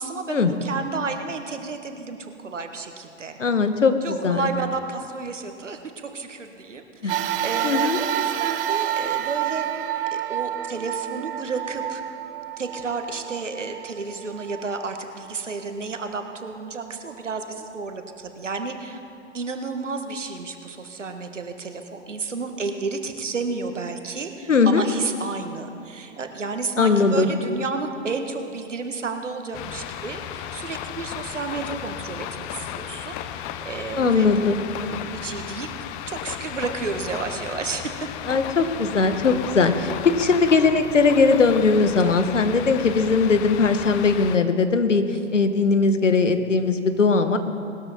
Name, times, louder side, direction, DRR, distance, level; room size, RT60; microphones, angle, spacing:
voice 1, 0.0-3.4 4.0-5.8 6.1-9.9 10.1-12.0 12.6-19.0 19.3-35.7 36.1-37.9 42.0-42.2, right 4 dB, 80° right, 6 dB, 1.6 m, -32 dB
voice 2, 3.4-4.5 7.0-7.1 7.6-8.0 24.5-24.8 26.8-27.3 34.0-34.6 38.3-45.0 45.3-47.4, left 4 dB, 80° left, 9 dB, 1.3 m, -19 dB
sound 1, 7.1-15.7 16.3-16.4 17.5-17.6, right 11 dB, 50° right, 0.8 m, -29 dB
sound 2, 29.5-44.4, left 10 dB, 25° left, 0.6 m, -35 dB
20.0 x 13.0 x 4.4 m, 2.6 s
figure-of-eight pair, 110°, 36 cm